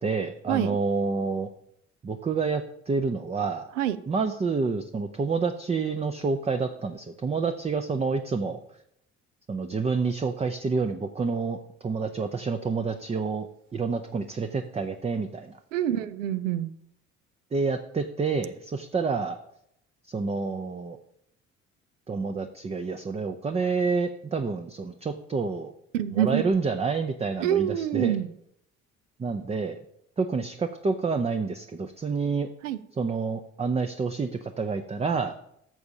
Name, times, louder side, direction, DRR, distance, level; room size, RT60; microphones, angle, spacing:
voice 1, 0.0-1.5 2.0-3.7 4.1-8.6 9.5-15.6 17.5-19.4 20.1-21.0 22.1-25.7 26.1-28.2 29.2-29.8 30.2-32.5 33.0-35.3, right 4 dB, 15° right, 7 dB, 0.5 m, -28 dB
voice 2, 15.7-16.7 25.9-26.4 27.4-28.3 32.6-32.8, right 11 dB, 80° right, 14 dB, 0.6 m, -26 dB
13.5 x 6.9 x 2.8 m, 0.75 s
figure-of-eight pair, 50°, 38 cm